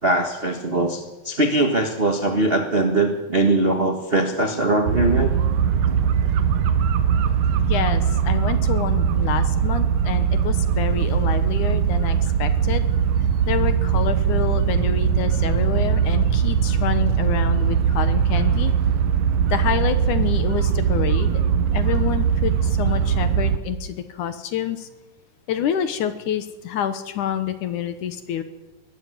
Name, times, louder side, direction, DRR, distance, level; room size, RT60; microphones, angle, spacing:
voice 1, 0.0-5.3 5.9-6.0, right 2 dB, 40° right, 4 dB, 0.8 m, -21 dB
sound 1, 4.9-23.6, right 8 dB, 65° right, 1.9 m, -20 dB
voice 2, 7.7-12.8 13.5-18.7 19.5-21.4 21.7-24.9 25.5-28.4, left 9 dB, 70° left, 10 dB, 2.5 m, -27 dB
20.5 x 13.5 x 9.6 m, 1.1 s
omnidirectional pair, 3.9 m